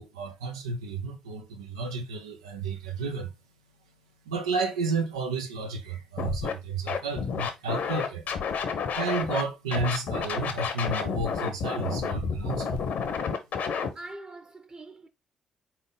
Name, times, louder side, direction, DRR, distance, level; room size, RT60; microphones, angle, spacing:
voice 1, 0.0-3.3 4.3-8.3 8.9-12.9 13.2-13.3, right 4 dB, 85° right, 0.5 m, -32 dB
Scratching (performance technique), 6.2-6.5 6.9-9.4 9.7-13.9, left 6 dB, 60° left, 0.8 m, -30 dB
voice 2, 13.9-15.1, right 2 dB, 30° right, 1.0 m, -43 dB
4.0 x 3.5 x 3.8 m
figure-of-eight pair, 40°, 3 cm